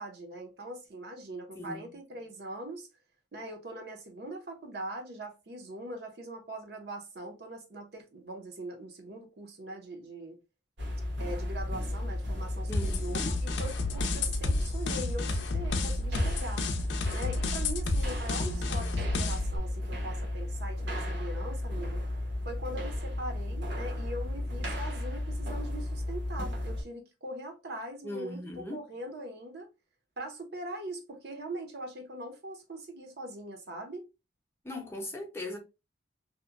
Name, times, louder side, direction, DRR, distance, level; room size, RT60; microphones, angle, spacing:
voice 1, 0.0-2.9 3.3-10.4 11.2-16.6 17.1-22.0 22.4-29.7 30.2-34.0, right 1 dB, 60° right, 0.6 m, -41 dB
sound 1, 10.8-26.8, left 1 dB, 80° right, 1.0 m, -34 dB
sound 2, 12.7-19.6, left 2 dB, 75° left, 0.4 m, -32 dB
voice 2, 12.7-13.3 18.4-18.9 28.0-28.8 34.6-35.6, left 1 dB, 15° left, 0.6 m, -39 dB
2.8 x 2.1 x 2.4 m
head